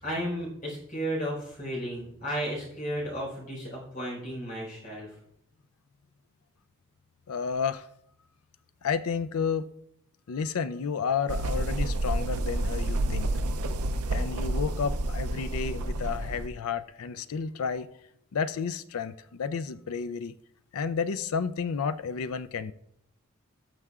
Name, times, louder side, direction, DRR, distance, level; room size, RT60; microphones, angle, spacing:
voice 1, 0.0-5.1, equal, 40° left, 4.3 m, -33 dB
voice 2, 7.3-7.9 8.8-9.7 10.3-13.3 14.1-17.9 18.3-20.3 20.7-22.7, left 6 dB, 80° left, 0.4 m, -31 dB
sound 1, 11.3-16.5, right 1 dB, 85° right, 0.6 m, -29 dB
18.5 x 6.6 x 2.4 m
head